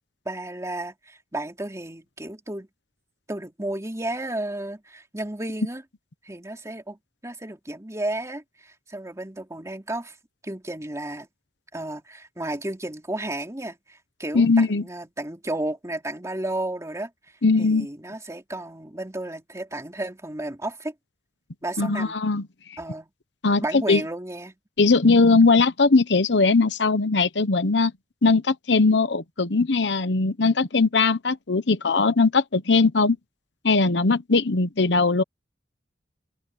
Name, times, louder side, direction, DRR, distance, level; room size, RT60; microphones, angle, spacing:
voice 1, 0.2-2.7 3.3-5.8 6.2-7.0 7.2-10.2 10.4-11.3 11.7-17.1 17.6-20.9 21.6-22.1 22.8-23.1 23.6-24.6, right 1 dB, 15° right, 3.0 m, -33 dB
voice 2, 14.3-14.8 17.4-17.9 21.8-22.5 23.4-23.6 23.9-24.0 24.8-27.9 28.2-33.2 33.6-35.2, left 3 dB, 70° left, 1.1 m, -20 dB
open air
head